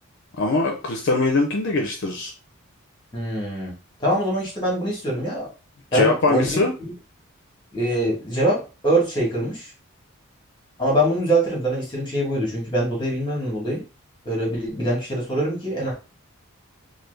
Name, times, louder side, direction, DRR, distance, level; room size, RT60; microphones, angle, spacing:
voice 1, 0.4-2.3 5.9-6.7, left 3 dB, 55° left, 2 dB, 0.5 m, -22 dB
voice 2, 3.1-3.7 4.0-5.5 5.9-6.9 7.7-9.7 10.8-13.8 14.2-15.9, right 1 dB, 20° left, -3 dB, 1.6 m, -24 dB
3.2 x 2.2 x 3.3 m, 0.32 s
head